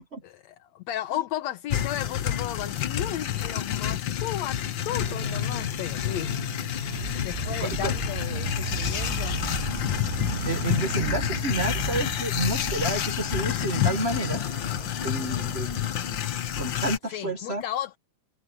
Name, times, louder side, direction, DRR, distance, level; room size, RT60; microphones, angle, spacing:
voice 1, 0.2-6.3 7.2-9.4 17.1-18.0, left 12 dB, 65° left, 2.0 m, -34 dB
sound 1, 1.7-17.0, left 11 dB, 85° left, 1.0 m, -29 dB
sound 2, 4.4-16.3, right 1 dB, 25° right, 4.2 m, -36 dB
Motorcycle, 7.1-13.7, right 6 dB, 75° right, 3.4 m, -40 dB
voice 2, 7.6-7.9 10.4-14.4 15.0-15.9 16.6-17.6, right 2 dB, 50° right, 0.7 m, -30 dB
omnidirectional pair, 3.7 m